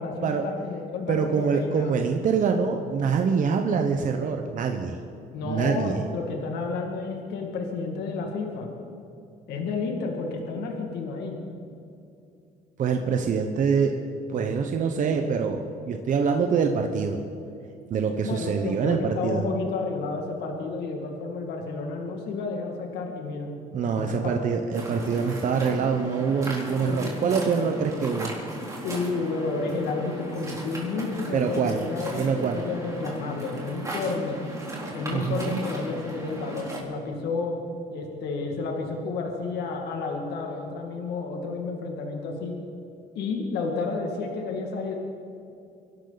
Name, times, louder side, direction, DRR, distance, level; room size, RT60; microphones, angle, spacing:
voice 1, 0.0-1.9 5.3-8.7 9.5-11.4 18.2-23.5 23.8-24.3 26.8-27.1 28.8-34.4 34.9-37.6 37.9-42.5 43.1-45.0, left 4 dB, 80° left, 1 dB, 2.2 m, -31 dB
voice 2, 1.1-5.0 5.4-6.0 12.8-13.9 14.3-17.2 17.9-19.4 23.7-28.3 31.3-31.8 32.1-32.6 35.1-35.6, right 6 dB, 50° right, 4 dB, 1.1 m, -25 dB
Waves surf, 24.7-36.8, right 1 dB, 20° right, 3.9 m, -37 dB
24.5 x 12.0 x 4.1 m, 2.7 s
cardioid pair, 110°, 17 cm